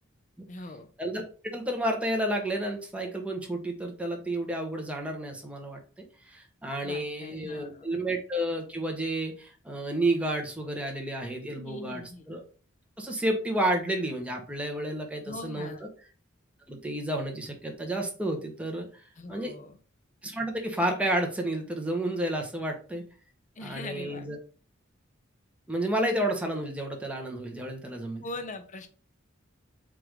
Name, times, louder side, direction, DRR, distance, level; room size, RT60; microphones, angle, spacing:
voice 1, 0.5-0.9 6.8-7.9 11.6-12.2 15.2-15.9 19.2-19.8 23.6-24.3 28.2-28.9, left 2 dB, 40° left, 7 dB, 0.6 m, -41 dB
voice 2, 1.5-12.4 13.0-15.7 16.7-18.9 19.3-19.5 20.2-23.0 23.6-24.4 25.7-28.2, right 1 dB, 5° right, 2 dB, 0.8 m, -31 dB
4.7 x 2.5 x 3.4 m, 0.38 s
head